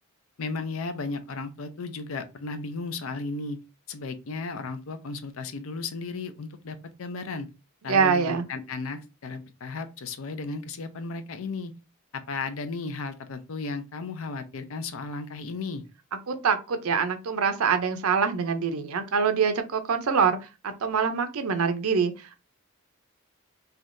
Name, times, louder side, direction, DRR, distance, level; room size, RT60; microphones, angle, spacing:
voice 1, 0.4-3.6 3.9-7.5 7.8-11.7 12.1-15.8, left 3 dB, 70° left, 0.5 m, -35 dB
voice 2, 7.9-8.5 16.3-20.4 20.6-22.4, right 6 dB, 80° right, 0.6 m, -25 dB
3.4 x 2.7 x 2.6 m
head